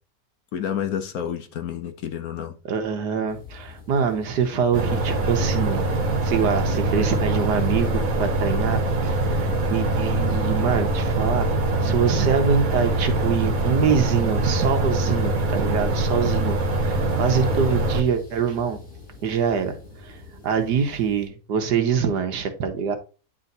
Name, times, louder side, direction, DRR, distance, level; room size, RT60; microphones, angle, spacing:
voice 1, 0.5-2.5, left 9 dB, 65° left, 1.1 m, -29 dB
voice 2, 2.6-5.8 6.2-11.5 11.8-18.8 19.2-19.8 20.0-23.0, right 6 dB, 80° right, 1.5 m, -24 dB
sound 1, 3.3-21.3, left 4 dB, 35° left, 4.8 m, -43 dB
sound 2, 4.7-18.0, right 2 dB, 55° right, 1.5 m, -23 dB
9.8 x 3.4 x 4.0 m
omnidirectional pair, 1.8 m